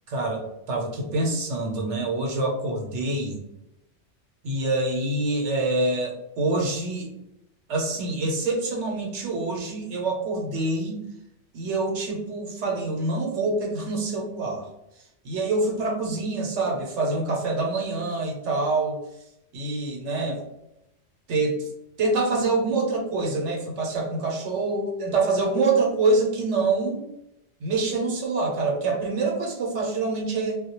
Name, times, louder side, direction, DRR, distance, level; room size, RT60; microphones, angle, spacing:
voice 1, 0.1-3.4 4.4-7.1 7.7-11.0 11.5-14.7 15.2-19.0 19.5-20.4 21.3-21.7 22.0-27.0 27.6-30.5, right 3 dB, 75° right, 0 dB, 0.9 m, -26 dB
2.2 x 2.1 x 2.8 m, 0.86 s
omnidirectional pair, 1.2 m